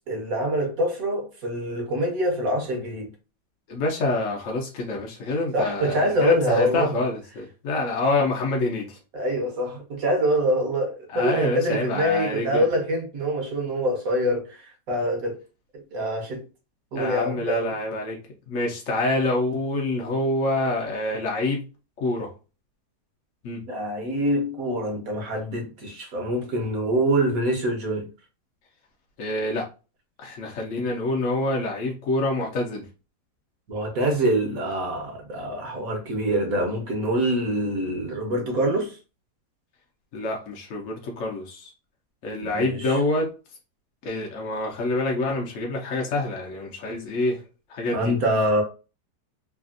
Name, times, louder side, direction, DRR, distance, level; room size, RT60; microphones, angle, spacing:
voice 1, 0.1-3.1 5.5-7.0 9.1-15.4 15.7-16.4 16.9-17.7 23.7-28.1 33.7-39.0 42.4-43.0 47.9-48.6, equal, 55° right, 1.2 m, -25 dB
voice 2, 3.7-9.0 11.1-12.6 16.9-18.2 18.5-21.6 22.0-22.3 23.4-23.6 29.2-29.7 30.2-32.9 40.1-41.7 42.2-43.3 44.0-47.4 47.7-48.1, left 2 dB, 60° left, 0.8 m, -26 dB
3.3 x 2.4 x 2.5 m
omnidirectional pair, 1.9 m